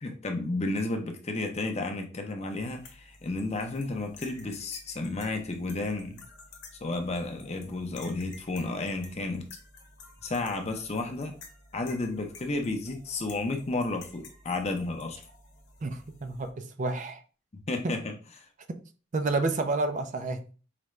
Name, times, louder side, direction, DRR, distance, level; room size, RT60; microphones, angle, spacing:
voice 1, 0.0-6.2 6.8-9.5 10.2-11.3 11.7-15.2 17.7-18.1, left 2 dB, 30° left, 0.6 m, -32 dB
sound 1, 2.5-16.5, left 3 dB, 55° left, 0.9 m, -52 dB
voice 2, 15.8-17.2 17.8-17.9 18.7-18.8 19.1-20.6, right 3 dB, 35° right, 0.4 m, -30 dB
4.8 x 2.2 x 3.1 m
head